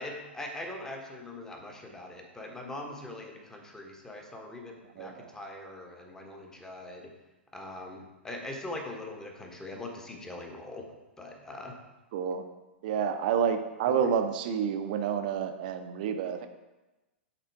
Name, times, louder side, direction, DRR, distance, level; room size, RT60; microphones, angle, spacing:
voice 1, 0.0-7.1 7.5-10.9 11.2-11.7 13.9-14.1, left 2 dB, 10° left, 2 dB, 1.2 m, -42 dB
voice 2, 5.0-5.3 12.1-12.4 12.8-16.5, right 7 dB, 45° right, 8 dB, 0.8 m, -29 dB
9.9 x 4.2 x 4.7 m, 1.1 s
figure-of-eight pair, 100°, 6 cm